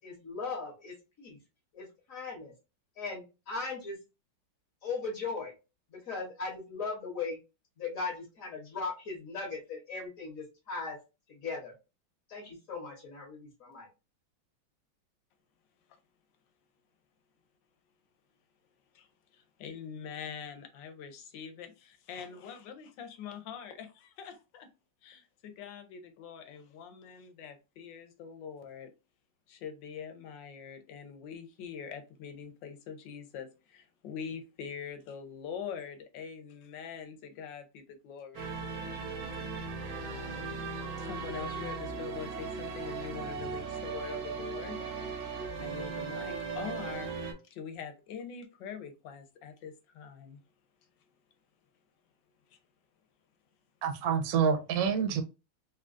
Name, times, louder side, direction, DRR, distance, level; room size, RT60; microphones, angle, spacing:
voice 1, 0.0-1.4 1.7-2.5 3.0-4.0 4.8-5.5 5.9-7.4 7.8-11.0 11.3-11.7 12.3-13.9, left 4 dB, 55° left, 1.1 m, -38 dB
voice 2, 18.9-24.7 25.0-28.9 29.5-38.5 40.0-40.7 41.0-44.9 45.6-47.1 47.4-50.4 52.5-52.6, left 7 dB, 75° left, 1.2 m, -44 dB
Spring Arrives, 38.3-47.3, right 5 dB, 85° right, 1.6 m, -38 dB
voice 3, 53.8-55.2, right 7 dB, 65° right, 0.9 m, -27 dB
3.7 x 2.3 x 2.4 m
omnidirectional pair, 2.2 m